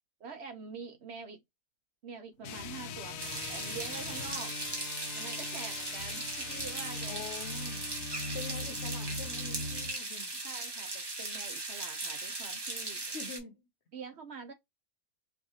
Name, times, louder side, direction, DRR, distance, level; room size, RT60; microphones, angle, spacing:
voice 1, 0.2-1.4 2.0-4.6 5.1-7.2 8.2-8.6 10.4-13.0 13.9-14.5, right 5 dB, 60° right, 0.8 m, -45 dB
sound 1, 2.4-10.0, left 3 dB, 75° left, 1.0 m, -41 dB
sound 2, 3.2-13.4, right 2 dB, 25° right, 0.6 m, -38 dB
voice 2, 7.1-7.9 8.3-10.4 13.0-13.7, left 5 dB, 55° left, 1.0 m, -45 dB
4.7 x 2.5 x 2.7 m
omnidirectional pair, 1.5 m